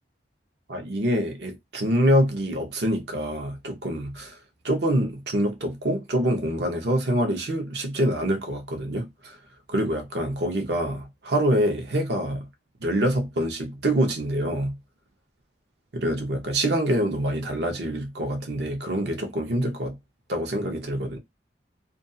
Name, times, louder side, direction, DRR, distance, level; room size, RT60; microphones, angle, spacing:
voice 1, 0.7-4.4 4.6-9.4 9.7-12.5 12.8-14.8 15.9-20.0 20.3-21.2, right 1 dB, 65° right, 0.8 m, -25 dB
2.5 x 2.3 x 2.5 m
head